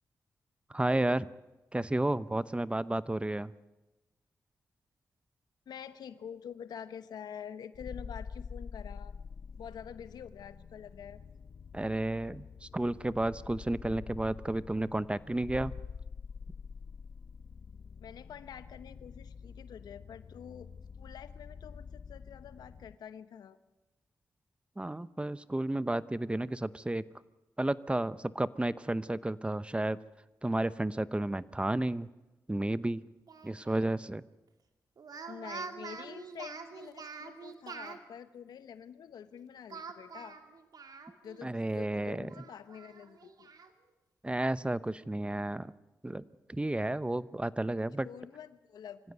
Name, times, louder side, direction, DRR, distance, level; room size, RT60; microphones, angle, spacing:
voice 1, 0.7-1.3 1.7-3.5 11.7-15.7 24.8-27.0 27.6-30.0 30.4-32.1 32.5-33.0 33.4-34.2 41.4-42.3 44.2-45.7 46.0-46.2 46.5-48.1, right 1 dB, 15° right, 17 dB, 0.8 m, -32 dB
voice 2, 5.7-9.1 9.6-11.2 18.0-20.7 21.0-23.6 35.3-40.4 41.2-43.5 47.9-49.0, left 8 dB, 90° left, 13 dB, 1.0 m, -47 dB
sound 1, 7.7-22.9, left 6 dB, 65° left, 0.9 m, -47 dB
Speech, 33.3-33.9 35.0-38.0 39.7-41.4 41.8-41.9 42.3-43.7, right 5 dB, 70° right, 2.4 m, -45 dB
24.5 x 16.5 x 9.3 m, 1.0 s
cardioid pair, 55°, 7 cm